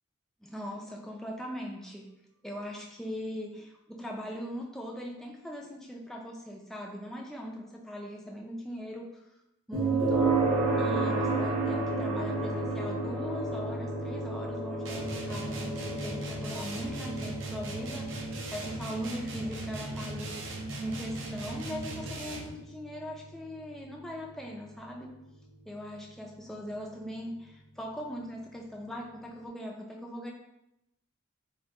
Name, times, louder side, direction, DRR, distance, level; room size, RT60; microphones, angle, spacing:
voice 1, 0.4-2.1 2.4-9.2 9.7-10.4 10.8-25.1 25.7-30.3, equal, ahead, -1 dB, 0.4 m, -40 dB
sound 1, 9.7-24.7, right 3 dB, 80° right, 1.3 m, -32 dB
sound 2, 14.9-22.6, right 2 dB, 65° right, 0.6 m, -38 dB
3.6 x 2.6 x 3.7 m, 0.88 s
head